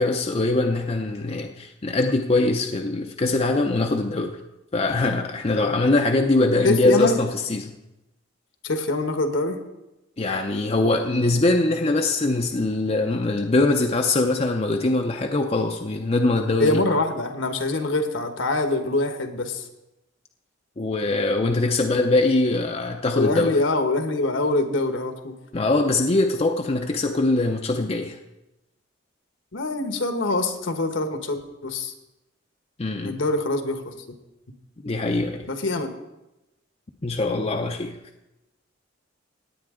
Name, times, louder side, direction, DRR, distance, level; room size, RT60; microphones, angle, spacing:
voice 1, 0.0-4.4 4.7-7.8 10.2-16.8 20.8-23.6 25.5-28.2 32.8-33.2 34.8-35.5 37.0-38.0, left 2 dB, 30° left, 3 dB, 0.6 m, -22 dB
voice 2, 6.6-7.2 8.6-9.6 16.6-19.7 23.1-25.3 29.5-31.9 33.0-34.0 35.5-35.9, left 2 dB, 70° left, 7 dB, 1.2 m, -24 dB
17.0 x 9.2 x 3.7 m, 0.97 s
head